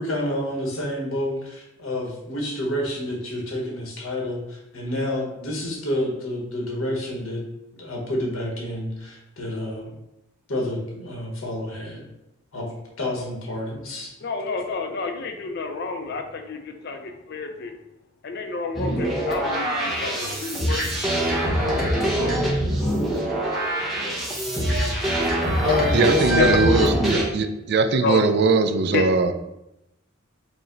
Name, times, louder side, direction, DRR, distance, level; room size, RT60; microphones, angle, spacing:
voice 1, 0.0-7.4 7.7-9.9 10.5-12.0 12.5-12.7 13.0-14.1 25.3-26.8, left 1 dB, 90° left, 0 dB, 1.1 m, -28 dB
voice 2, 14.2-17.7 18.2-21.0 26.4-26.5 28.0-28.2 28.9-29.1, left 4 dB, 55° left, 6 dB, 0.4 m, -29 dB
sound 1, 18.7-27.2, right 1 dB, ahead, 0.8 m, -24 dB
voice 3, 25.9-29.3, right 4 dB, 50° right, 8 dB, 0.3 m, -21 dB
4.8 x 2.1 x 3.8 m, 0.87 s
head